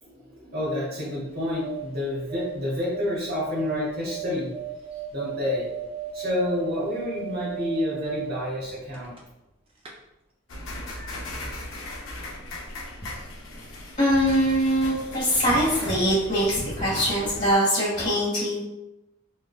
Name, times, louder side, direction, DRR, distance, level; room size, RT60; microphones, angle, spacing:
voice 1, 0.0-4.5 5.1-5.7 6.1-9.1, left 1 dB, 50° right, -4 dB, 1.0 m, -29 dB
sound 1, 1.3-9.5 9.8-9.9, right 10 dB, 25° right, 0.4 m, -37 dB
sound 2, 10.5-17.6, left 1 dB, 65° left, 0.6 m, -38 dB
voice 2, 14.0-18.6, equal, 35° left, -8 dB, 1.4 m, -22 dB
3.3 x 2.2 x 2.3 m, 0.94 s
head